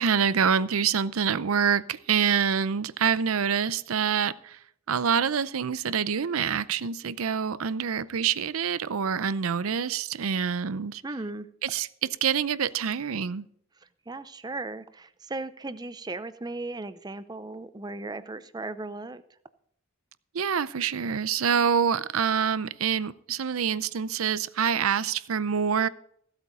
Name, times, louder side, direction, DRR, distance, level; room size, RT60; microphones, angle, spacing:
voice 1, 0.0-4.6 4.9-11.0 11.6-11.9 12.2-13.5 20.3-25.9, right 7 dB, 85° right, 16 dB, 0.6 m, -26 dB
voice 2, 11.0-11.5 14.1-19.2, right 2 dB, 20° right, 13 dB, 0.5 m, -36 dB
15.5 x 8.1 x 5.1 m, 0.68 s
head